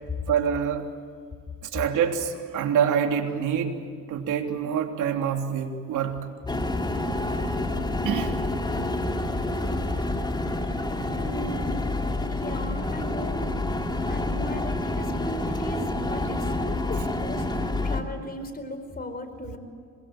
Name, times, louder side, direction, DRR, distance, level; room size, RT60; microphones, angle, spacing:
voice 1, 0.3-0.9 1.6-3.8 4.1-6.3 8.0-8.4, right 8 dB, 80° right, 4 dB, 3.4 m, -26 dB
sound 1, 6.5-18.0, left 2 dB, 15° left, 3.0 m, -28 dB
voice 2, 11.2-11.8 12.3-13.6 14.1-19.6, left 1 dB, 30° left, 8 dB, 4.4 m, -37 dB
26.5 x 23.0 x 9.1 m, 2.2 s
cardioid pair, 90°, 30 cm